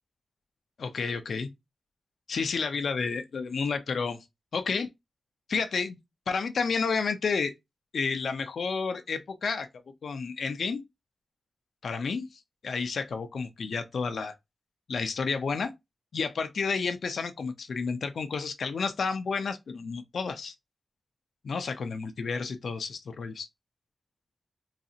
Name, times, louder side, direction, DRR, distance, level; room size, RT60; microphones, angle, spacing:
voice 1, 0.8-1.5 2.3-4.2 4.5-4.9 5.5-6.0 6.3-7.5 7.9-9.7 10.0-10.8 11.8-14.3 14.9-15.7 16.1-20.5 21.4-23.5, left 5 dB, 90° left, 0.5 m, -31 dB
4.0 x 2.4 x 2.7 m
wide cardioid pair, 115°, 0 cm